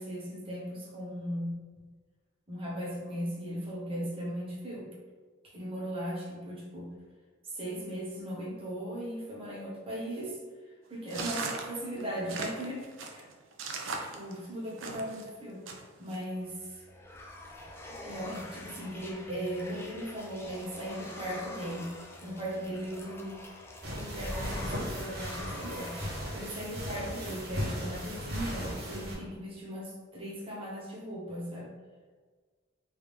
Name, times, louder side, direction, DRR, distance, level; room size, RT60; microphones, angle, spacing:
voice 1, 0.0-1.5 2.5-4.9 5.5-6.9 7.5-10.4 10.9-12.8 13.1-13.3 14.1-15.6 16.0-16.6 18.0-21.9 22.2-23.4 23.9-26.0 26.3-31.7, equal, 30° right, -5 dB, 1.0 m, -38 dB
sound 1, 11.1-15.2 15.7-16.2, right 4 dB, 70° right, 0.5 m, -38 dB
sound 2, 16.4-26.4, left 1 dB, 10° left, 0.4 m, -44 dB
sound 3, 23.8-29.2, equal, 50° right, 1.0 m, -37 dB
3.4 x 2.8 x 3.3 m, 1.5 s
head